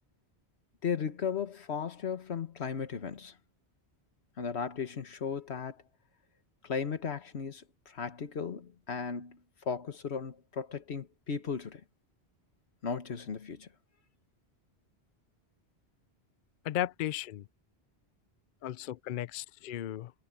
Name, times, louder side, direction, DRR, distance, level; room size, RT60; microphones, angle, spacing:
voice 1, 0.8-3.3 4.4-5.8 6.6-11.8 12.8-13.7, left 6 dB, 90° left, 1.6 m, -36 dB
voice 2, 16.6-17.4 18.6-20.1, left 12 dB, 60° left, 0.6 m, -35 dB
omnidirectional pair, 1.1 m